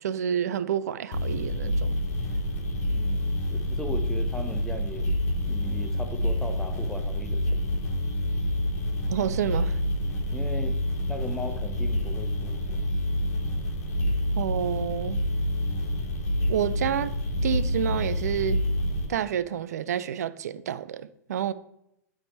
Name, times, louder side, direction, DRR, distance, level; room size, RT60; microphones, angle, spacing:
voice 1, 0.0-1.9 9.1-9.8 14.4-15.2 16.5-17.1 17.4-18.6 19.1-21.5, right 9 dB, 65° right, 0.4 m, -29 dB
sound 1, 1.1-19.1, left 1 dB, 60° left, 1.4 m, -28 dB
voice 2, 2.9-5.1 5.5-7.8 10.3-10.8 11.1-12.8, left 1 dB, 5° left, 0.8 m, -38 dB
9.0 x 3.6 x 3.3 m
figure-of-eight pair, 105°, 9 cm